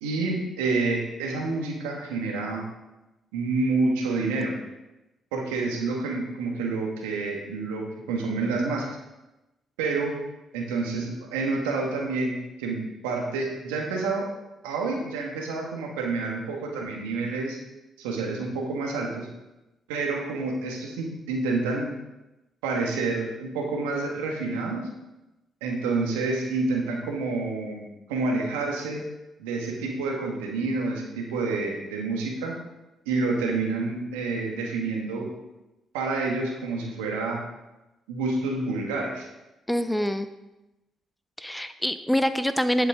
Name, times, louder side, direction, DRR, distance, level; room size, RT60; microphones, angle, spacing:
voice 1, 0.0-2.6 3.3-4.6 5.3-8.9 9.8-10.2 10.5-14.3 14.6-17.6 18.0-19.3 19.9-21.9 22.6-24.9 25.6-29.0 29.4-32.5 33.0-35.3 35.9-37.4 38.1-39.3, right 3 dB, 85° right, 1 dB, 1.6 m, -28 dB
voice 2, 39.7-40.3 41.4-42.9, equal, 5° left, 11 dB, 0.7 m, -25 dB
10.5 x 7.9 x 3.7 m, 0.99 s
hypercardioid pair, 45°, 0 cm